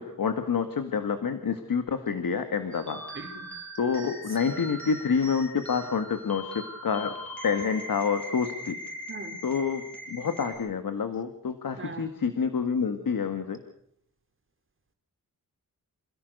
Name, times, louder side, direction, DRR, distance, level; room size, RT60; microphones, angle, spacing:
voice 1, 0.0-3.0 3.8-7.1 7.4-8.7 9.4-9.8 10.1-13.6, left 6 dB, 70° left, 8 dB, 1.9 m, -28 dB
sound 1, 2.7-10.5, equal, 5° left, 6.5 m, -40 dB
voice 2, 3.2-3.5 4.4-4.8 9.1-9.3 11.8-12.1, right 3 dB, 35° right, 5 dB, 3.7 m, -41 dB
27.5 x 17.0 x 6.7 m, 0.67 s
wide cardioid pair, 140°, 35 cm